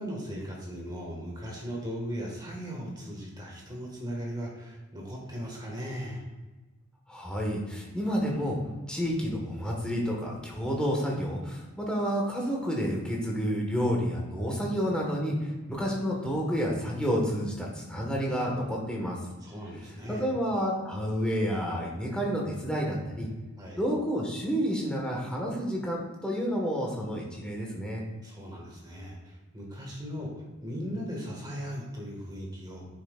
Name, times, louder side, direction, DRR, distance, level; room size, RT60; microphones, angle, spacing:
voice 1, 0.0-6.2 19.4-20.3 23.6-23.8 28.2-30.3 30.6-32.9, equal, 20° right, -2 dB, 1.7 m, -38 dB
voice 2, 7.1-8.6 8.9-19.2 20.1-23.3 23.8-28.0, equal, 5° left, -3 dB, 1.5 m, -30 dB
9.9 x 6.0 x 2.5 m, 1.2 s
head